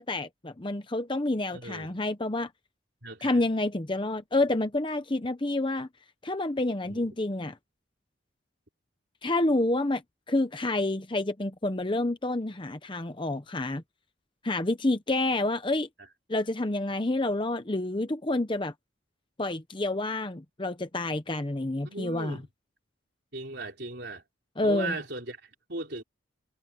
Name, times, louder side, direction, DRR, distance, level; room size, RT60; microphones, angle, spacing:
voice 1, 0.0-2.5 3.2-5.9 6.2-7.6 9.2-10.0 10.3-13.8 14.4-15.9 16.3-18.7 19.4-22.4 24.6-24.9, left 2 dB, 25° left, 0.8 m, -28 dB
voice 2, 1.5-2.0 3.0-3.5 6.8-7.2 16.0-16.1 21.8-22.5 23.3-24.2 24.6-26.0, right 2 dB, 55° right, 4.5 m, -38 dB
head